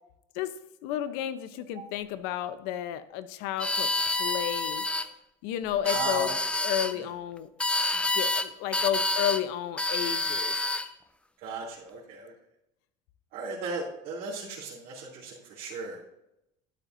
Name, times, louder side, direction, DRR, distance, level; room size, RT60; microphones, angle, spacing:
voice 1, 0.8-4.8 5.4-6.3 6.6-7.5 7.9-10.5, left 11 dB, 80° left, 12 dB, 0.8 m, -32 dB
sound 1, 3.6-5.1 5.7-6.9 7.6-8.5 8.7-9.4 9.8-10.9, left 2 dB, 5° left, 0.5 m, -28 dB
voice 2, 5.8-6.3 7.0-7.1 11.4-12.3 13.3-16.1, right 3 dB, 65° right, -7 dB, 2.8 m, -36 dB
12.0 x 9.0 x 2.7 m, 0.83 s
cardioid pair, 130°, 17 cm